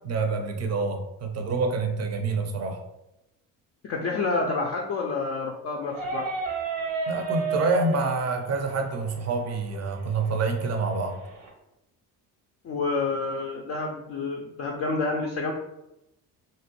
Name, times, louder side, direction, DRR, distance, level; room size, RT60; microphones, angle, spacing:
voice 1, 0.0-2.8 7.1-11.2, right 3 dB, 35° right, 5 dB, 0.5 m, -27 dB
voice 2, 3.8-6.3 12.6-15.5, left 3 dB, 35° left, 0 dB, 0.4 m, -28 dB
sound 1, 5.9-11.5, right 5 dB, 70° right, 0.8 m, -33 dB
2.6 x 2.0 x 2.8 m, 0.90 s
hypercardioid pair, 60°, 47 cm